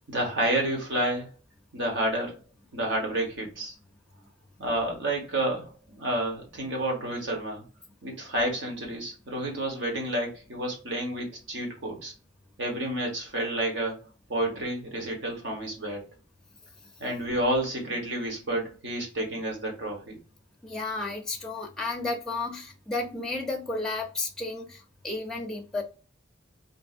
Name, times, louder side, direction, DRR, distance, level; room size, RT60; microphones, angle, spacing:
voice 1, 0.1-1.3 1.7-2.4 2.7-3.7 4.6-7.6 8.0-12.1 12.6-14.0 14.3-16.0 17.0-20.2, right 1 dB, 70° right, 1.2 m, -30 dB
voice 2, 20.6-25.8, left 3 dB, 5° left, 0.5 m, -32 dB
3.5 x 2.7 x 2.4 m
head